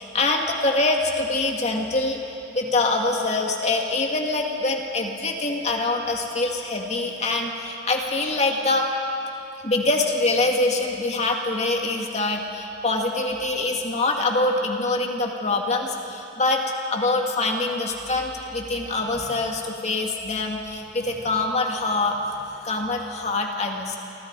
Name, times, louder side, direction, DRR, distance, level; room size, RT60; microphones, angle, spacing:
voice 1, 0.0-2.2 2.5-8.9 9.6-16.6 16.9-22.3 22.6-24.0, left 2 dB, 35° left, 1 dB, 2.4 m, -24 dB
28.5 x 25.0 x 4.9 m, 2.8 s
head